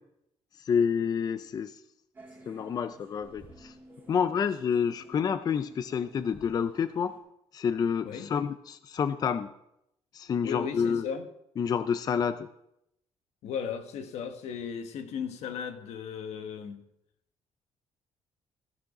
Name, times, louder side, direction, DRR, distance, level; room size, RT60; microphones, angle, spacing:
voice 1, 0.6-1.8 2.5-3.7 4.1-7.1 7.5-9.5 10.1-11.1 11.6-12.5, left 7 dB, 35° left, 0.4 m, -28 dB
sound 1, 2.1-7.2, right 1 dB, 20° right, 2.6 m, -54 dB
voice 2, 10.4-11.2 13.4-16.8, left 7 dB, 85° left, 1.2 m, -36 dB
14.5 x 6.5 x 4.9 m
cardioid pair, 145°, 11 cm